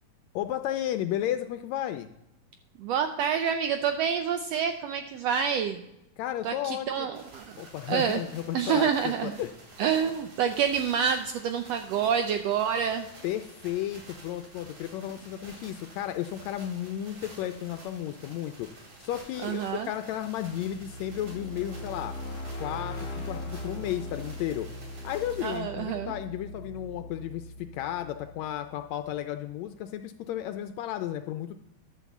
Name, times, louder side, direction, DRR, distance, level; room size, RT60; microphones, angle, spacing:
voice 1, 0.3-2.1 6.2-7.1 7.6-9.5 13.2-22.1 22.6-24.7 25.0-31.5, left 12 dB, 80° left, 8 dB, 1.6 m, -33 dB
voice 2, 2.8-5.8 6.4-7.6 7.9-8.2 8.5-9.4 9.8-13.1 19.4-19.9 25.4-26.1, right 7 dB, 90° right, 7 dB, 1.4 m, -27 dB
sound 1, 7.1-25.6, right 2 dB, 65° right, 4.1 m, -50 dB
sound 2, 20.1-29.0, left 1 dB, 40° left, 1.5 m, -40 dB
11.5 x 4.1 x 7.1 m, 0.90 s
omnidirectional pair, 3.5 m